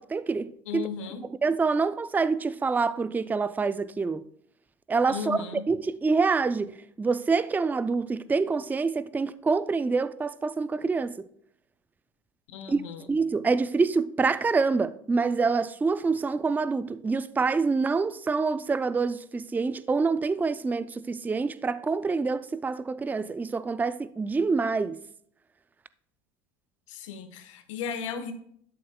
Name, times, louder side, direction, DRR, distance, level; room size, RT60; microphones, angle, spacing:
voice 1, 0.0-0.9 1.4-4.3 4.9-5.4 5.7-11.3 12.7-12.8 13.1-25.0, right 4 dB, 10° right, 0.4 m, -26 dB
voice 2, 0.7-1.2 5.1-5.6 12.5-13.1 26.9-28.3, left 7 dB, 85° left, 1.2 m, -35 dB
12.0 x 6.8 x 2.2 m
supercardioid pair, 95°, 16 cm